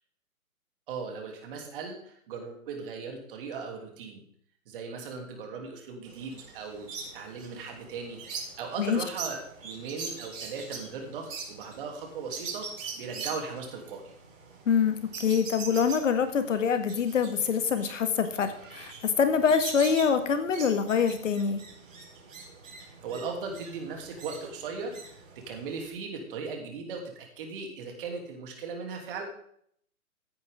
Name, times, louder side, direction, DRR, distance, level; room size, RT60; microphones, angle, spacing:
voice 1, 0.9-4.2 4.7-6.9 7.1-12.7 13.0-14.1 22.8-29.2, right 5 dB, 40° right, 2 dB, 2.9 m, -38 dB
sound 1, 6.0-25.9, right 5 dB, 60° right, 4.4 m, -43 dB
voice 2, 14.6-21.6, left 6 dB, 60° left, 9 dB, 1.7 m, -25 dB
15.0 x 9.4 x 3.6 m, 0.66 s
hypercardioid pair, 145°, 43 cm